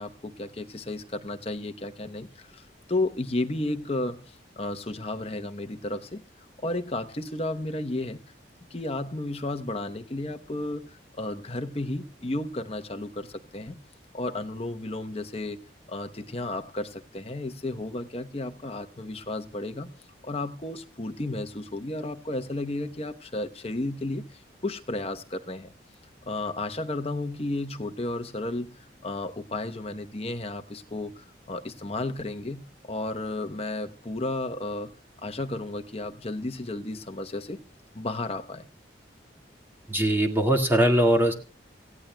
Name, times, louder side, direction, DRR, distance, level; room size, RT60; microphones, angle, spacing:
voice 1, 0.0-6.2 6.6-8.2 8.7-13.8 14.1-15.6 15.9-19.9 20.2-25.7 26.3-35.0 35.2-37.6 37.9-38.7, left 2 dB, 30° left, 0.9 m, -33 dB
voice 2, 39.9-41.3, right 1 dB, 10° right, 1.9 m, -21 dB
28.0 x 15.5 x 2.3 m
head